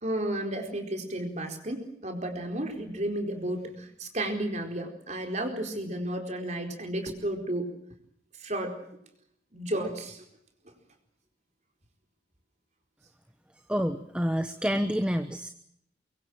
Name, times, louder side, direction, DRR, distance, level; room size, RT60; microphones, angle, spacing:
voice 1, 0.0-7.7 8.4-8.8 9.5-10.2, right 1 dB, 40° right, 3 dB, 4.4 m, -32 dB
voice 2, 13.7-15.5, equal, 5° right, 8 dB, 1.1 m, -28 dB
24.5 x 23.0 x 7.6 m, 0.72 s
head